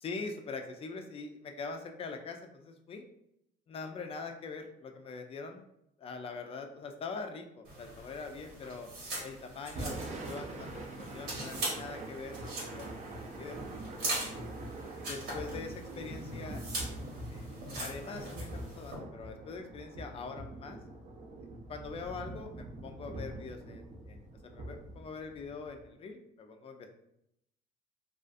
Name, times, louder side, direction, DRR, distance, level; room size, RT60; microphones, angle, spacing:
voice 1, 0.0-3.0 3.7-5.6 6.0-8.9 9.2-13.6 14.0-14.2 15.1-17.0 17.3-17.5 17.8-20.8 21.7-26.9, left 4 dB, 35° left, 5 dB, 0.4 m, -43 dB
sound 1, 7.6-18.9, right 1 dB, 85° right, 1.1 m, -41 dB
Thunder / Rain, 9.7-25.9, right 2 dB, 45° right, 0.5 m, -44 dB
2.4 x 2.4 x 2.4 m, 0.79 s
cardioid pair, 110°, 17 cm